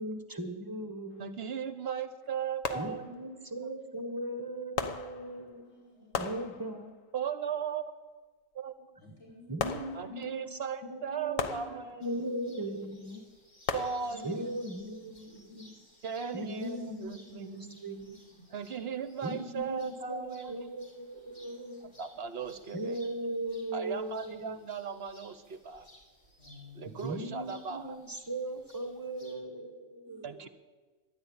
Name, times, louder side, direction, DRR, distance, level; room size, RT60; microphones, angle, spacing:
voice 1, 0.0-1.3 2.7-5.7 6.2-6.9 9.0-9.1 9.5-10.6 10.9-13.2 14.2-15.7 16.3-18.2 19.2-21.9 22.7-24.6 27.0-30.5, right 1 dB, 15° right, 8 dB, 1.2 m, -38 dB
sound 1, 1.1-1.3 2.6-3.4 4.8-5.7 6.1-7.1 9.6-10.5 11.4-12.3 13.7-14.6 15.2-15.3, left 6 dB, 70° left, 1.4 m, -38 dB
voice 2, 1.2-3.5 7.1-7.9 8.5-9.0 9.9-12.1 13.7-14.4 16.0-17.7 18.5-20.8 22.0-23.0 23.7-25.9 26.7-28.0 30.2-30.5, right 7 dB, 55° right, 12 dB, 1.0 m, -37 dB
voice 3, 5.6-6.1 9.0-9.8 11.0-11.1 14.0-14.5 15.2-15.4 16.7-16.9 17.4-17.6 17.8-18.4 26.4-27.0 30.0-30.3, left 1 dB, 55° left, -4 dB, 4.8 m, -52 dB
sound 2, 12.0-29.3, equal, 35° left, 3.6 m, -60 dB
13.5 x 11.0 x 8.6 m, 1.3 s
omnidirectional pair, 1.4 m